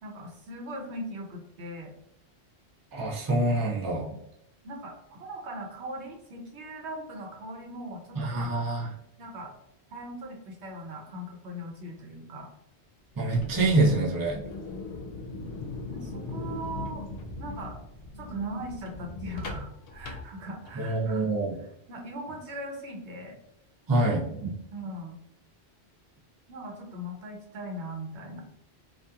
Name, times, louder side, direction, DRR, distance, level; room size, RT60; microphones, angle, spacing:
voice 1, 0.0-1.9 4.1-4.2 4.6-8.5 9.2-9.5 9.9-12.5 14.3-14.4 15.9-17.0 17.4-17.8 18.1-21.3 21.9-23.4 24.7-25.2 26.5-28.4, right 1 dB, 85° right, 1 dB, 1.0 m, -39 dB
voice 2, 2.9-4.1 8.2-8.9 13.2-14.4 20.8-21.5 23.9-24.5, right 2 dB, 25° right, -4 dB, 0.5 m, -26 dB
sound 1, 13.1-21.0, left 2 dB, 65° left, 0.7 m, -39 dB
2.7 x 2.4 x 2.3 m, 0.81 s
omnidirectional pair, 1.1 m